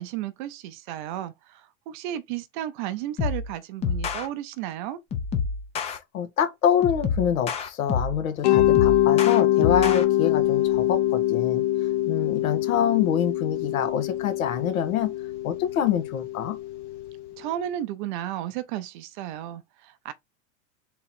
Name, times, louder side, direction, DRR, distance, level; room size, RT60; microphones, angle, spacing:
voice 1, 0.0-5.0 17.4-20.1, right 12 dB, 40° right, 0.5 m, -33 dB
sound 1, 3.2-3.5 3.8-4.3 5.1-6.0 6.8-8.2 8.5-10.0, left 5 dB, 15° left, 0.5 m, -27 dB
voice 2, 5.9-11.6 12.1-15.1 15.4-16.6, left 9 dB, 80° left, 1.3 m, -26 dB
Mallet percussion, 8.4-17.2, left 14 dB, 55° left, 1.0 m, -24 dB
3.8 x 2.9 x 4.3 m
hypercardioid pair, 135°, 41 cm